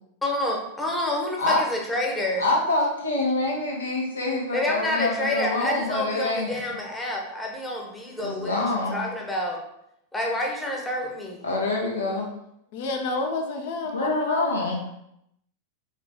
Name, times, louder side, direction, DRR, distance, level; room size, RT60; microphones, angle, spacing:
voice 1, 0.2-2.4 4.5-8.6 8.9-9.6 10.1-11.4, left 1 dB, 10° left, -1 dB, 0.9 m, -28 dB
voice 2, 2.4-6.6 8.2-9.1 11.4-12.3 13.9-14.8, left 2 dB, 75° left, -1 dB, 1.0 m, -26 dB
voice 3, 12.7-14.5, left 3 dB, 50° left, 3 dB, 0.7 m, -29 dB
3.8 x 3.3 x 3.5 m, 0.78 s
figure-of-eight pair, 90°, 0 cm